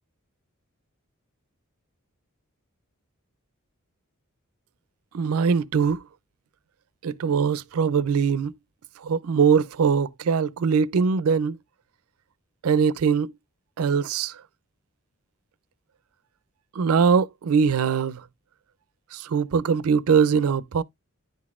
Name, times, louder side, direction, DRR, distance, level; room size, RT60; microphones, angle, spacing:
voice 1, 5.1-6.0 7.0-8.5 9.0-11.6 12.6-13.3 13.8-14.4 16.7-18.2 19.1-20.8, right 6 dB, 80° right, 0.4 m, -22 dB
10.0 x 3.9 x 2.4 m
head